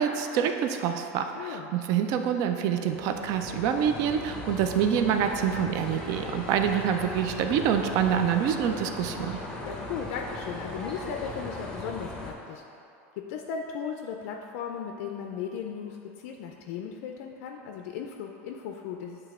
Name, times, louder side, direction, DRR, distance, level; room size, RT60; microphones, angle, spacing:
voice 1, 0.0-9.4, right 8 dB, 45° right, 6 dB, 0.4 m, -26 dB
voice 2, 1.3-1.7 9.6-12.6 13.2-19.2, left 7 dB, 60° left, 2 dB, 0.4 m, -36 dB
sound 1, 2.8-12.3, left 2 dB, 10° left, 0.7 m, -38 dB
7.9 x 3.3 x 3.6 m, 2.7 s
supercardioid pair, 140°, 8 cm